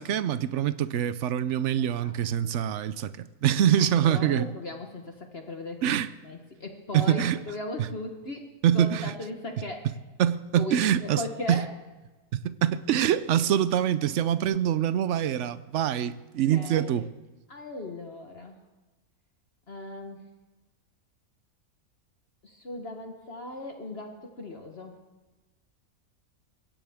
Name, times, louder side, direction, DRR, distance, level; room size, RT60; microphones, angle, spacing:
voice 1, 0.0-4.4 5.8-6.1 6.9-7.4 8.6-9.1 10.2-11.2 11.5-11.6 12.3-17.1, right 10 dB, 60° right, 0.8 m, -25 dB
voice 2, 1.8-2.2 2.4-2.5 3.8-6.0 6.2-9.9 10.5-11.7 16.5-17.1 17.5-18.6 19.7-20.2 22.4-24.9, left 2 dB, 45° left, 1.4 m, -38 dB
22.0 x 16.5 x 3.6 m
omnidirectional pair, 1.6 m